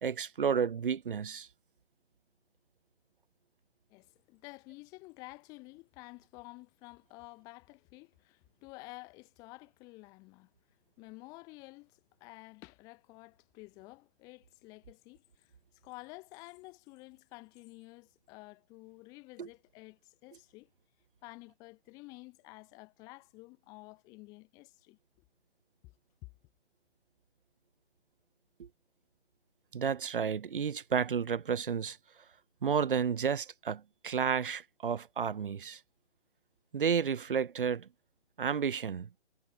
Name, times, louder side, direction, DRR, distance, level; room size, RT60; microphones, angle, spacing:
voice 1, 0.0-1.5 19.4-19.5 28.6-28.7 29.7-32.0 32.6-35.8 36.7-37.9 38.4-39.1, right 7 dB, 50° right, 0.8 m, -31 dB
voice 2, 3.9-10.5 11.0-20.7 21.2-25.0, left 25 dB, 10° left, 1.5 m, -51 dB
hypercardioid pair, 165°, 35 cm